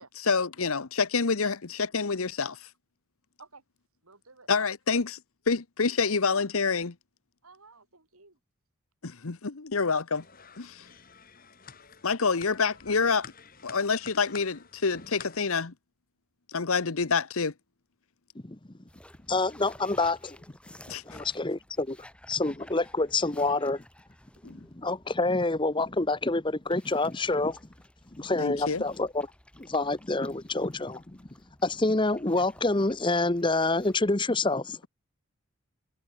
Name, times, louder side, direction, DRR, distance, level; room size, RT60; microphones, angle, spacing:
voice 1, 0.0-2.7 4.5-5.2 5.5-6.9 9.0-10.2 10.6-10.9 12.0-13.3 13.6-15.7 16.5-17.5 20.9-21.2 24.4-24.6 28.4-28.8, left 5 dB, 70° left, 1.0 m, -27 dB
voice 2, 4.0-4.5 4.9-5.0 5.8-6.0 7.4-8.4, right 4 dB, 75° right, 4.5 m, -53 dB
sound 1, 10.1-15.4, left 6 dB, 40° left, 3.6 m, -49 dB
sound 2, 18.9-34.0, left 1 dB, 5° left, 7.5 m, -55 dB
voice 3, 19.3-20.4 21.1-22.0 22.3-23.8 24.7-27.6 28.1-29.3 29.6-31.0 31.6-34.8, left 2 dB, 20° left, 0.9 m, -27 dB
head